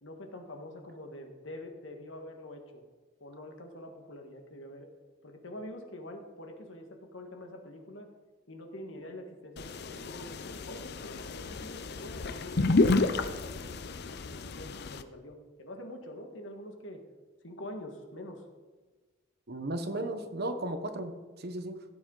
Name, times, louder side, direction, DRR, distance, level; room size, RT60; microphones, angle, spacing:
voice 1, 0.0-2.8 3.2-4.9 5.2-8.1 8.5-13.7 14.3-17.0 17.4-18.4 19.9-20.0, left 1 dB, 75° left, 4 dB, 1.7 m, -45 dB
sound 1, 9.6-15.0, left 3 dB, 55° left, 0.6 m, -31 dB
voice 2, 19.5-21.8, right 1 dB, 55° right, 8 dB, 1.1 m, -35 dB
16.0 x 8.8 x 4.0 m, 1.3 s
head